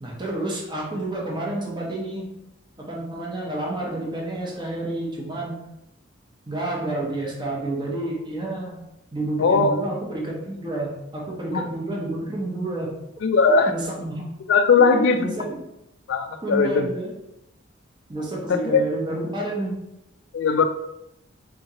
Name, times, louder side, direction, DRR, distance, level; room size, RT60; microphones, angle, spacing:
voice 1, 0.0-2.3 2.8-5.6 6.5-8.7 9.1-12.9 13.5-14.3 14.8-15.6 16.4-17.1 18.1-19.7, right 2 dB, 20° right, -3 dB, 0.7 m, -29 dB
voice 2, 9.4-9.8 11.5-11.6 13.2-13.7 14.5-15.3 16.1-16.9 18.5-18.8 20.3-20.6, left 4 dB, 60° left, 7 dB, 0.3 m, -19 dB
3.6 x 2.9 x 2.8 m, 0.85 s
head